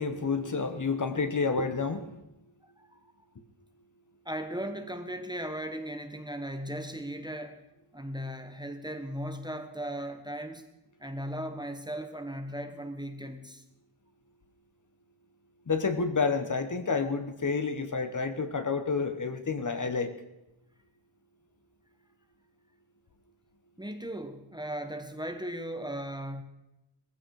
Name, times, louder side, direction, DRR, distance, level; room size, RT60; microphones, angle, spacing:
voice 1, 0.0-2.2 15.7-20.1, left 4 dB, 40° left, 9 dB, 1.2 m, -29 dB
voice 2, 2.8-3.1 4.2-7.6 7.9-10.7 11.0-13.6 23.8-26.4, right 1 dB, 10° right, 6 dB, 1.1 m, -37 dB
19.5 x 15.5 x 4.8 m, 0.91 s
wide cardioid pair, 175°, 47 cm